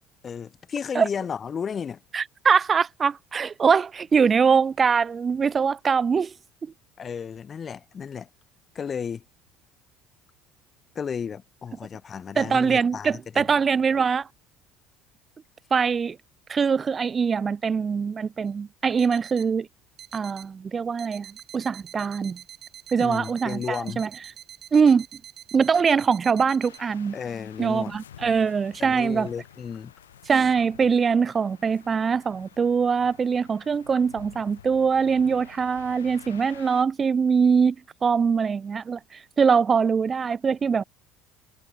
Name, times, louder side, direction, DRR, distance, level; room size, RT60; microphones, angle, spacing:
voice 1, 0.2-2.0 7.0-8.3 8.7-9.2 10.9-13.5 23.0-24.0 27.1-27.9 28.8-29.9 30.4-30.5, left 7 dB, 35° left, 1.6 m, -33 dB
voice 2, 2.1-6.3 12.4-14.3 15.7-16.2 16.5-19.7 20.1-21.3 21.5-22.4 22.9-24.1 24.7-25.1 25.5-27.2 27.6-29.3 30.3-37.8 38.0-40.8, right 6 dB, 30° right, 0.6 m, -22 dB
sound 1, 18.5-18.6 19.0-19.5 20.0-20.5 21.0-26.8, right 11 dB, 50° right, 2.5 m, -46 dB
sound 2, 26.6-36.8, left 10 dB, 85° left, 3.6 m, -50 dB
hypercardioid pair, 65°, 0 cm